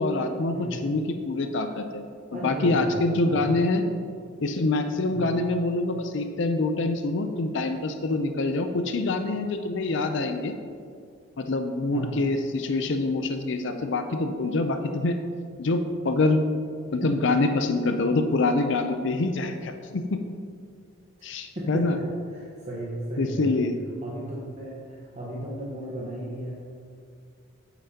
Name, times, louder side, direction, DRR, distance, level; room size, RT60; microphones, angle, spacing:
voice 1, 0.0-2.0 2.3-3.8 4.4-10.5 11.4-15.2 15.6-16.4 16.9-20.2 21.2-21.9 23.2-23.7, left 2 dB, 65° left, 7 dB, 0.5 m, -25 dB
voice 2, 2.3-3.5 5.1-5.3 11.9-12.1 16.8-17.1 21.5-23.5 24.0-26.5, right 1 dB, 35° right, -6 dB, 1.1 m, -35 dB
8.9 x 8.8 x 2.8 m, 2.2 s
head